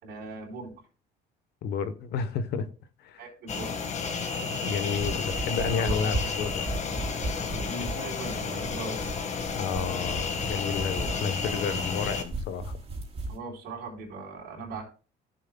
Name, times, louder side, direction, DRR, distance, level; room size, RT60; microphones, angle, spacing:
voice 1, 0.0-0.7 3.2-3.7 5.7-6.2 7.7-9.0 13.3-14.8, right 3 dB, 75° right, 3.9 m, -39 dB
voice 2, 1.6-2.7 3.0-3.2 4.6-6.6 9.5-12.8, left 6 dB, 75° left, 0.9 m, -31 dB
sound 1, 3.5-12.2, left 5 dB, 45° left, 1.5 m, -32 dB
sound 2, 4.7-13.4, right 2 dB, 35° right, 3.0 m, -37 dB
15.0 x 7.2 x 2.2 m
cardioid pair, 110°, 17 cm